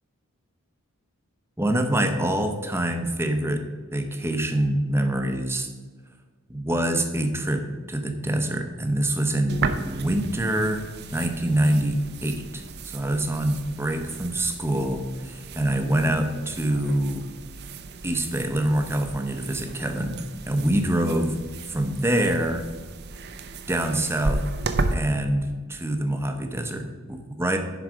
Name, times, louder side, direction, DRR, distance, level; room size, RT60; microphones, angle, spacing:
voice 1, 1.6-3.6 3.9-5.7 6.5-17.3 18.0-20.2 20.5-21.4 21.7-22.7 23.7-24.4 24.9-27.6, right 1 dB, 10° right, 5 dB, 0.7 m, -25 dB
sound 1, 9.5-24.9, right 3 dB, 45° right, 0.6 m, -34 dB
10.5 x 4.7 x 5.0 m, 1.4 s
head